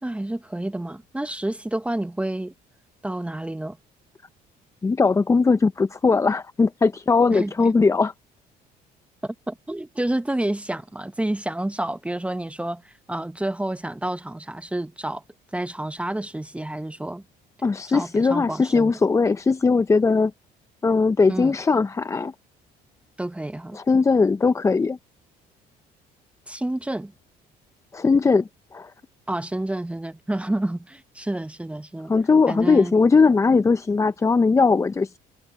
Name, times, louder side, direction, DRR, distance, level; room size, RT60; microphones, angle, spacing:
voice 1, 0.0-2.5 3.0-3.8 7.3-7.7 9.2-15.2 15.5-17.2 17.9-19.0 21.3-21.6 23.2-23.8 26.5-27.1 29.3-32.1 32.5-32.9, right 1 dB, 5° right, 0.9 m, -29 dB
voice 2, 4.8-8.1 17.6-20.3 20.8-22.3 23.7-25.0 27.9-28.9 32.1-35.2, left 4 dB, 15° left, 0.5 m, -19 dB
cardioid pair, 110°, 17 cm